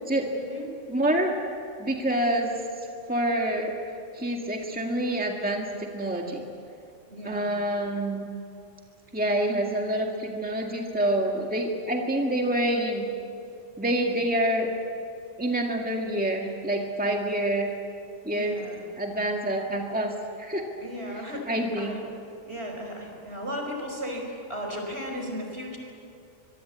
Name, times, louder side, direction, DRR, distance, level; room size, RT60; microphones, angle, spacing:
voice 1, 0.3-0.7 7.1-7.5 18.3-18.8 20.8-21.5 21.8-22.0 22.5-25.8, equal, 60° right, 2 dB, 5.4 m, -35 dB
voice 2, 0.9-1.3 1.8-2.5 3.1-3.8 4.1-6.4 7.2-8.3 9.1-13.0 13.8-14.7 15.4-17.7 18.3-18.6 19.0-20.7 21.5-21.9, right 1 dB, 5° right, 1 dB, 2.0 m, -27 dB
25.0 x 22.5 x 8.4 m, 2.6 s
omnidirectional pair, 1.2 m